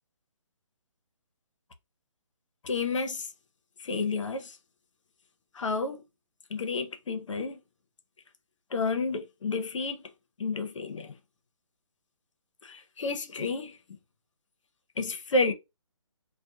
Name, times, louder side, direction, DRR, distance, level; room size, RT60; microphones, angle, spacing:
voice 1, 2.6-3.3 3.8-4.6 5.5-6.0 6.5-7.6 8.7-10.0 10.4-11.2 12.6-13.8 15.0-15.5, left 3 dB, 70° left, 0.7 m, -30 dB
2.3 x 2.1 x 2.7 m
hypercardioid pair, 170°, 17 cm